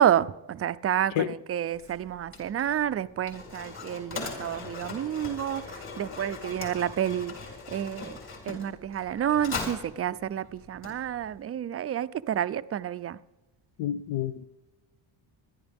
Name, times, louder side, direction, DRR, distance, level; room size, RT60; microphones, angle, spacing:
voice 1, 0.0-5.6 6.0-7.3 7.7-8.2 8.5-13.2, right 10 dB, 30° right, 0.4 m, -29 dB
Mechanisms, 1.7-11.4, left 4 dB, 50° left, 4.4 m, -40 dB
voice 2, 13.8-14.5, left 11 dB, 75° left, 0.6 m, -29 dB
25.5 x 11.0 x 3.5 m
cardioid pair, 115°, 47 cm